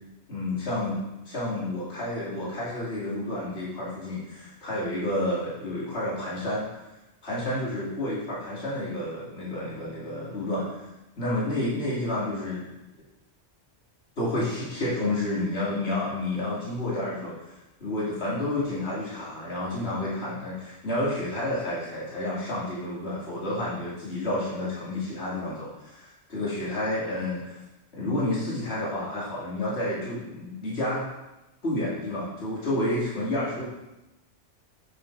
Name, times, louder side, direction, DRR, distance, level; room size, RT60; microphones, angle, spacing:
voice 1, 0.3-6.7 7.2-10.8 11.2-12.7 14.2-17.5 17.8-27.6 27.9-31.1 31.6-33.6, left 1 dB, 60° left, -8 dB, 2.7 m, -30 dB
8.6 x 7.2 x 4.7 m, 0.97 s
omnidirectional pair, 1.2 m